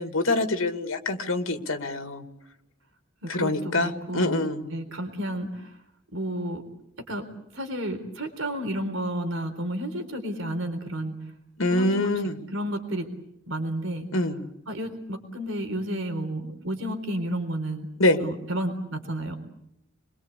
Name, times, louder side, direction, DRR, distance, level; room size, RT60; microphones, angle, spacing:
voice 1, 0.0-2.2 3.3-4.7 11.6-12.4 14.1-14.5 18.0-18.2, left 2 dB, 85° left, 7 dB, 2.3 m, -25 dB
voice 2, 3.2-4.4 4.7-5.8 6.1-6.6 7.1-7.2 7.5-11.1 11.7-12.2 12.5-13.1 13.5-14.1 14.7-17.9 18.2-19.4, right 1 dB, 75° right, 5 dB, 3.9 m, -31 dB
30.0 x 22.5 x 8.3 m, 0.79 s
head